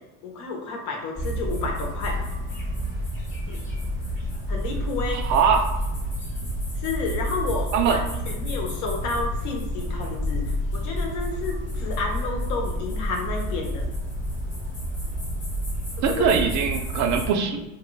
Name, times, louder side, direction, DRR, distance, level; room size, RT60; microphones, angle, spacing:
voice 1, 0.2-2.3 3.5-3.6 4.5-5.2 6.8-13.9 16.0-16.3, left 3 dB, 50° left, 1 dB, 0.9 m, -31 dB
sound 1, 1.2-17.3, equal, 20° left, 1.1 m, -29 dB
voice 2, 5.1-5.7 7.7-8.0 16.0-17.6, right 6 dB, 50° right, 5 dB, 0.5 m, -22 dB
2.9 x 2.6 x 3.1 m, 1.0 s
supercardioid pair, 115°, 38 cm